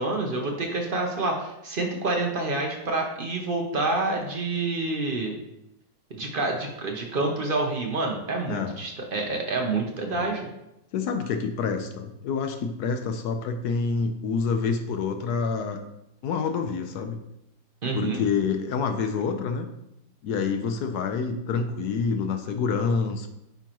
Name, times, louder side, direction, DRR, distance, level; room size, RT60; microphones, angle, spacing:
voice 1, 0.0-5.4 6.1-10.5 17.8-18.2, right 2 dB, 55° right, 1 dB, 0.5 m, -28 dB
voice 2, 10.9-15.8 16.2-17.2 17.9-19.7 20.2-23.3, left 5 dB, 70° left, 6 dB, 1.0 m, -27 dB
9.0 x 4.6 x 3.0 m, 0.85 s
omnidirectional pair, 2.1 m